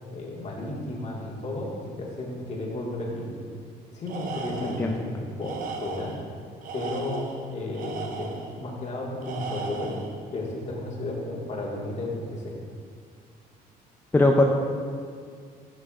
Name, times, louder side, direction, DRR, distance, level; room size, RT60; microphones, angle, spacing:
voice 1, 0.1-3.3 3.9-5.5 5.8-6.1 6.7-8.3 8.6-9.9 10.3-12.5, left 2 dB, 40° left, -3 dB, 1.7 m, -33 dB
Tools, 4.1-5.0 5.4-6.2 6.6-8.5 9.2-10.2, right 4 dB, 55° right, 0.8 m, -36 dB
voice 2, 4.6-4.9 14.1-14.4, left 2 dB, 10° left, 1 dB, 0.4 m, -20 dB
11.5 x 5.9 x 2.4 m, 2.2 s
cardioid pair, 110°, 17 cm